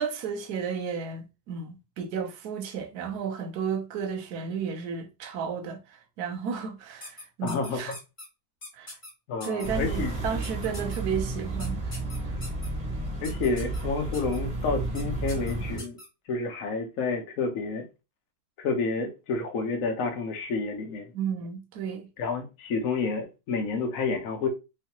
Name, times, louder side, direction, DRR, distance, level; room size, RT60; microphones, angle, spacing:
voice 1, 0.0-7.9 8.7-8.9 9.4-12.0 12.3-12.4 21.1-22.1, right 6 dB, 70° right, 1.1 m, -33 dB
sound 1, 7.0-8.3 8.6-9.1 9.4-9.7 10.4-11.0 11.6-12.7 13.2-13.8 14.1-14.4 14.9-15.0 15.3-16.1, left 2 dB, 25° left, 1.5 m, -42 dB
voice 2, 7.4-7.8 9.3-10.2 13.2-16.0 16.3-17.8 18.6-21.1 22.2-24.5, left 4 dB, 60° left, 1.0 m, -29 dB
sound 2, 9.6-15.8, right 2 dB, 25° right, 0.7 m, -32 dB
3.3 x 3.1 x 2.9 m
omnidirectional pair, 1.8 m